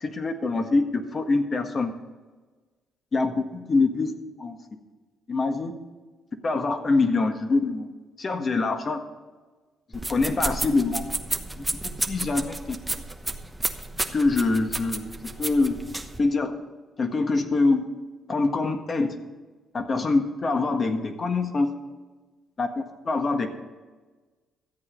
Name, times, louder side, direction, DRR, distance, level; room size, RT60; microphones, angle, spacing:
voice 1, 0.0-1.9 3.1-4.1 4.4-4.6 5.3-5.7 6.4-7.9 8.2-9.0 10.1-11.0 11.6-11.7 12.0-13.0 14.1-15.8 16.2-16.5 17.0-17.9 18.3-19.2 19.7-21.7 22.6-23.5, left 3 dB, 40° left, 6 dB, 1.5 m, -24 dB
sound 1, 9.9-16.2, right 2 dB, 10° right, 1.0 m, -32 dB
13.5 x 8.2 x 5.2 m, 1.3 s
cardioid pair, 90°, 0 cm